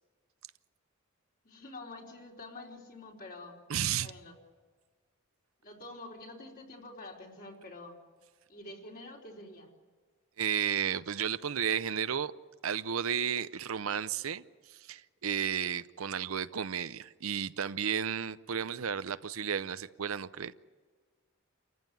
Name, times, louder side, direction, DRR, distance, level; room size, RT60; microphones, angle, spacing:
voice 1, 1.4-3.6 4.0-4.4 5.6-8.0 8.5-9.7, left 2 dB, 45° left, -1 dB, 3.9 m, -47 dB
voice 2, 3.7-4.1 10.4-12.3 12.6-14.4 14.7-20.5, right 8 dB, 75° right, 14 dB, 0.6 m, -33 dB
28.5 x 14.5 x 9.3 m, 1.5 s
head